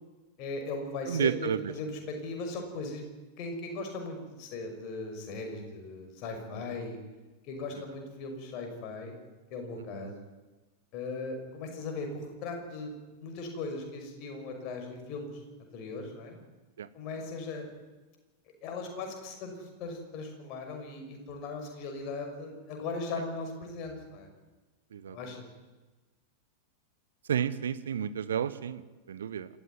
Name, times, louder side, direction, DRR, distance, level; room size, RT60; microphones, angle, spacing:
voice 1, 0.4-3.0 3.4-7.0 7.4-9.1 9.5-10.1 10.9-12.9 13.2-15.4 15.7-16.4 16.9-17.7 18.6-24.3 25.1-25.5, left 3 dB, 40° left, 4 dB, 5.8 m, -38 dB
voice 2, 1.1-1.7 10.0-10.1 16.8-16.9 24.9-25.2 27.3-29.5, right 8 dB, 65° right, 15 dB, 1.0 m, -31 dB
26.5 x 14.5 x 9.4 m, 1.2 s
figure-of-eight pair, 90°, 0 cm